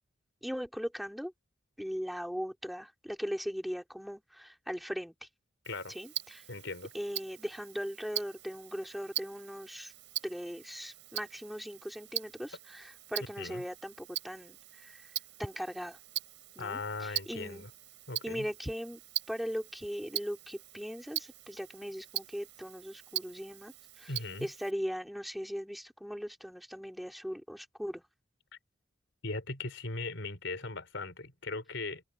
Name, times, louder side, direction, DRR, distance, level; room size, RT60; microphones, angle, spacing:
voice 1, 0.4-1.3 1.8-5.3 5.9-6.4 6.9-9.9 10.2-15.1 15.4-16.0 16.6-17.7 18.2-19.0 19.3-28.0, equal, ahead, 4.1 m, -39 dB
Tick-tock, 5.6-24.7, right 13 dB, 75° right, 4.4 m, -42 dB
voice 2, 5.7-6.0 6.5-6.9 13.4-13.6 16.6-17.7 18.1-18.5 24.1-24.5 29.2-32.0, left 3 dB, 80° left, 3.5 m, -38 dB
open air
head